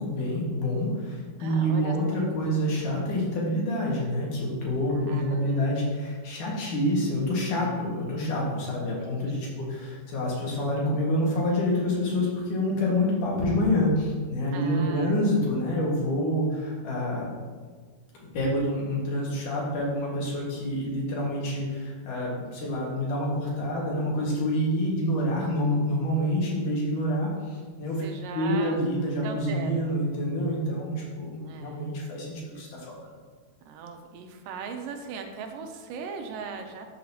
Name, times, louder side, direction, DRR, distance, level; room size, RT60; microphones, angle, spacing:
voice 1, 0.0-17.3 18.3-28.0 28.3-32.9, equal, 70° left, -4 dB, 3.4 m, -27 dB
voice 2, 1.4-2.0 4.9-5.8 9.0-9.2 9.5-9.6 14.5-15.2 28.0-28.8 29.2-29.8 31.4-31.9 33.7-36.9, right 5 dB, 85° right, 5 dB, 2.4 m, -39 dB
12.5 x 6.4 x 2.9 m, 1.5 s
omnidirectional pair, 3.9 m